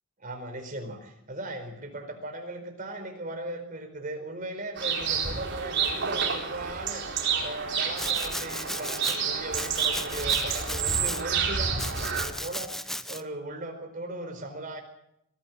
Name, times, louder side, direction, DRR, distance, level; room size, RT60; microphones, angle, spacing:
voice 1, 0.2-7.1 7.4-14.8, right 2 dB, 40° right, 5 dB, 4.6 m, -38 dB
sound 1, 4.8-12.3, right 6 dB, 55° right, 4.1 m, -29 dB
Domestic sounds home sounds, 8.0-9.2 9.5-11.2 11.8-13.2, left 1 dB, ahead, 0.8 m, -35 dB
22.0 x 15.0 x 8.4 m, 0.78 s
head